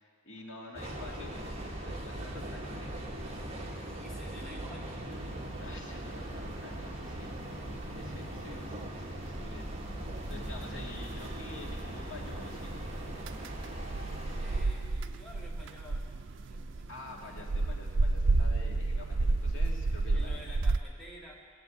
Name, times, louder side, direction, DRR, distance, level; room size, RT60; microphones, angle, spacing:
voice 1, 0.0-1.4 1.8-3.1 5.6-7.3 7.9-12.8 16.9-20.4, left 3 dB, 75° left, -1 dB, 2.2 m, -48 dB
Train, 0.7-14.7, right 1 dB, 30° right, 1.6 m, -40 dB
voice 2, 0.9-1.3 4.0-5.0 14.4-17.5 20.1-21.4, equal, 5° left, -5 dB, 1.9 m, -51 dB
sound 1, 5.1-20.8, right 3 dB, 65° right, 0.5 m, -33 dB
19.5 x 7.5 x 8.2 m, 2.2 s
head